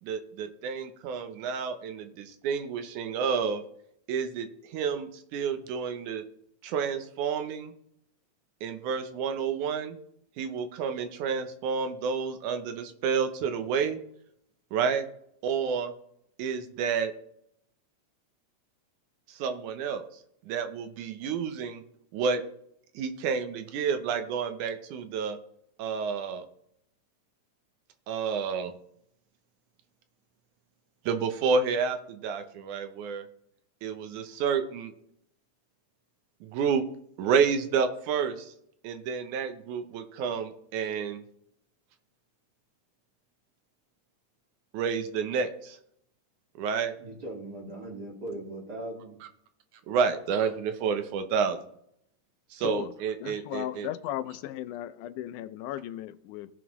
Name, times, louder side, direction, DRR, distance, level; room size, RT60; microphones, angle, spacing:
voice 1, 0.0-3.6 4.1-6.2 6.6-7.7 8.6-10.0 10.4-14.0 14.7-15.1 15.4-15.9 16.4-17.1 19.3-20.0 20.5-21.8 22.1-22.4 23.0-25.4 25.8-26.5 28.1-28.7 31.1-33.3 33.8-34.9 36.4-36.8 37.2-38.5 38.8-41.2 44.7-45.8 46.6-46.9 49.2-49.3 49.9-51.6 52.5-53.9, right 6 dB, 80° right, 8 dB, 2.3 m, -30 dB
voice 2, 47.0-49.1, right 1 dB, 35° right, -1 dB, 2.4 m, -39 dB
voice 3, 53.2-56.5, left 13 dB, 90° left, 13 dB, 2.1 m, -36 dB
17.0 x 6.1 x 3.1 m, 0.71 s
omnidirectional pair, 3.5 m